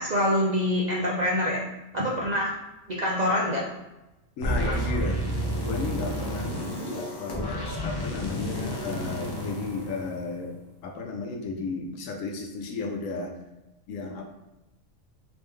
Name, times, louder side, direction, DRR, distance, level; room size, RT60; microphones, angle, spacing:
voice 1, 0.0-1.6 1.9-2.5 2.9-3.6 4.6-4.7, left 1 dB, 60° right, -3 dB, 0.4 m, -25 dB
voice 2, 4.4-10.6 10.8-13.3 13.9-14.2, left 3 dB, 90° left, 3 dB, 1.0 m, -34 dB
sound 1, 4.4-10.6, equal, 30° left, 0.5 m, -31 dB
3.4 x 3.0 x 3.2 m, 0.97 s
omnidirectional pair, 1.3 m